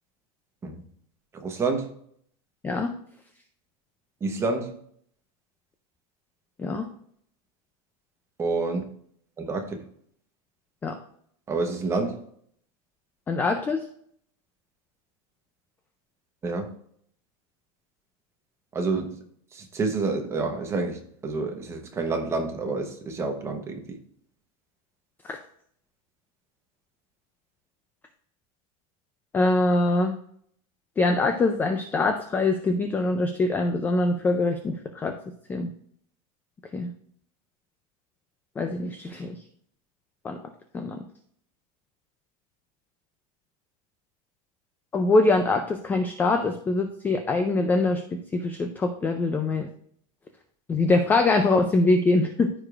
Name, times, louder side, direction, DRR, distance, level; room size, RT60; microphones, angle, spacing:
voice 1, 1.4-1.9 4.2-4.7 8.4-8.8 9.4-9.7 11.5-12.2 16.4-16.7 18.7-19.2 19.5-23.8, right 3 dB, 15° right, 0.9 m, -28 dB
voice 2, 13.3-13.8 25.2-25.4 29.3-30.2 31.0-35.1 35.5-35.7 36.7-36.9 38.6-39.3 40.2-40.4 40.7-41.0 44.9-48.0 48.3-49.7 50.7-52.5, left 2 dB, 10° left, 0.4 m, -23 dB
14.0 x 5.0 x 2.4 m
supercardioid pair, 170°, 18 cm